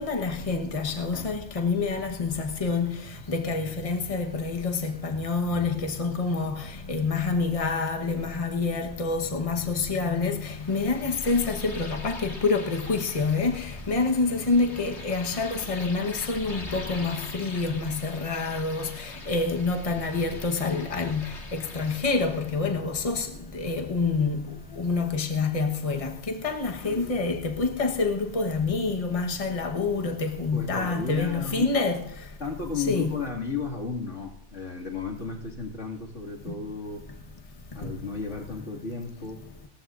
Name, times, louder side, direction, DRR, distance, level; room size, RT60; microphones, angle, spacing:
voice 1, 0.0-32.0 32.7-33.2 37.8-37.9, left 4 dB, 30° left, 1.3 m, -27 dB
sound 1, 10.4-22.7, left 2 dB, 70° left, 2.5 m, -44 dB
voice 2, 30.5-31.7 32.4-37.0 37.7-39.4, left 4 dB, 90° left, 2.6 m, -34 dB
30.0 x 14.0 x 2.6 m
omnidirectional pair, 1.2 m